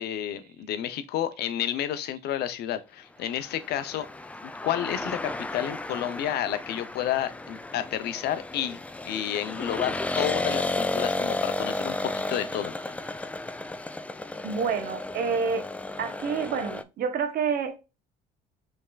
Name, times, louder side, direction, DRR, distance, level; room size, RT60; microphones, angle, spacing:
voice 1, 0.0-4.1 4.6-8.8 9.1-12.7, left 11 dB, 75° left, 0.7 m, -30 dB
sound 1, 3.4-16.8, left 2 dB, 10° left, 0.3 m, -33 dB
voice 2, 14.4-15.6 16.0-17.8, right 6 dB, 65° right, 1.1 m, -28 dB
5.3 x 3.5 x 2.3 m
cardioid pair, 110°, 17 cm